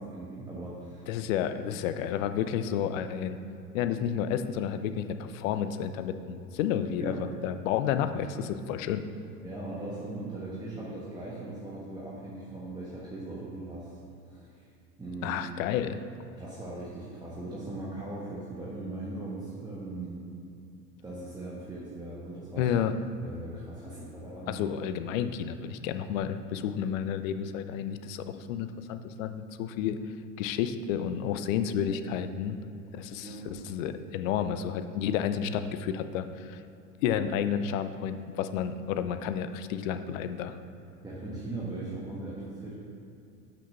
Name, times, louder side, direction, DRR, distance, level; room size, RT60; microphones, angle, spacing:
voice 1, 0.0-1.0 7.0-7.2 9.4-13.9 14.2-14.6 15.0-15.4 16.4-20.3 21.0-22.7 23.2-24.6 24.9-25.0 31.8-32.0 33.2-33.5 41.0-42.7, right 2 dB, 10° right, -7 dB, 1.3 m, -39 dB
voice 2, 1.1-3.4 3.7-9.0 15.2-16.0 22.6-22.9 24.5-32.6 32.9-36.6 37.0-40.6, left 8 dB, 55° left, 10 dB, 0.6 m, -31 dB
6.1 x 6.0 x 5.7 m, 2.5 s
hypercardioid pair, 85°, 48 cm